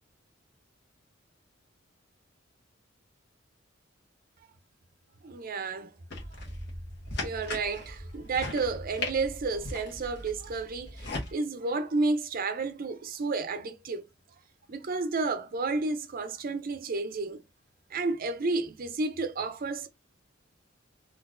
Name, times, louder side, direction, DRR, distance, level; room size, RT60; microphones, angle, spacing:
voice 1, 5.2-5.9 7.2-11.1 11.3-14.0 14.7-17.4 17.9-19.9, right 3 dB, 45° right, 0.5 m, -31 dB
sound 1, 6.1-11.3, left 2 dB, 55° left, 1.2 m, -39 dB
3.9 x 2.5 x 2.5 m
head